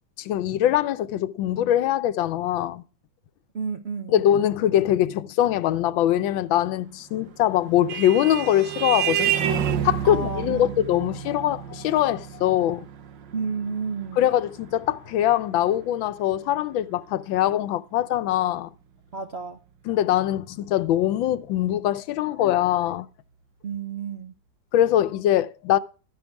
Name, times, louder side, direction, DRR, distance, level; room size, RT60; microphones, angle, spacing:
voice 1, 0.2-2.8 4.1-9.3 9.8-12.9 14.2-18.7 19.8-23.1 24.7-25.8, left 12 dB, 85° left, 1.5 m, -22 dB
voice 2, 3.5-4.1 10.0-10.7 13.3-14.2 19.1-19.6 23.6-24.3, right 5 dB, 50° right, 0.8 m, -31 dB
Vehicle horn car horn honking, 7.3-16.3, right 10 dB, 70° right, 1.6 m, -30 dB
13.0 x 10.5 x 3.5 m
omnidirectional pair, 2.1 m